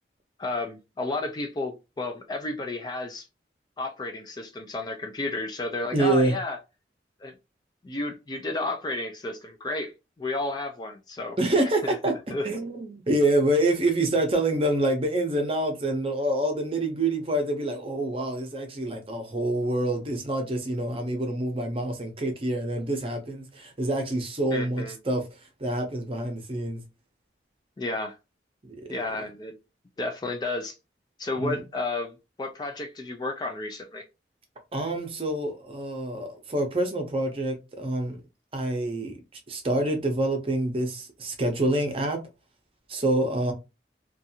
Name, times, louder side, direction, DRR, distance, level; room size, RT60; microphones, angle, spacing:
voice 1, 0.4-3.3 3.8-6.6 7.2-7.3 7.8-9.9 10.2-11.4 11.8-11.9 12.3-12.4 24.5-25.0 27.8-28.2 28.9-29.6 30.0-30.7 31.2-34.1, left 2 dB, 25° left, 0.3 m, -32 dB
voice 2, 5.9-6.3 11.4-12.1 12.4-25.3 25.6-26.8 28.6-28.8 31.4-31.6 34.7-38.2 38.5-39.2 39.5-42.2 42.9-43.5, right 1 dB, 30° right, 0.6 m, -26 dB
2.5 x 2.3 x 2.7 m
head